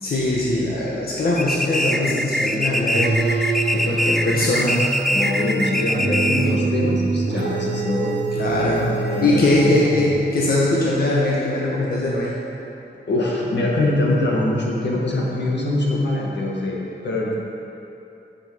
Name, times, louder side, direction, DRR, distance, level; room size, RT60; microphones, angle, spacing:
voice 1, 0.0-3.2 3.7-4.8 8.4-8.8 9.2-12.3, left 2 dB, 55° left, -5 dB, 1.4 m, -21 dB
sound 1, 1.4-6.6, equal, ahead, 0.4 m, -23 dB
sound 2, 2.9-10.4, right 3 dB, 65° right, 1.0 m, -25 dB
voice 2, 5.1-8.1 8.8-9.7 13.1-17.3, left 2 dB, 75° left, -3 dB, 1.7 m, -23 dB
9.7 x 7.8 x 5.2 m, 2.8 s
wide cardioid pair, 135°, 18 cm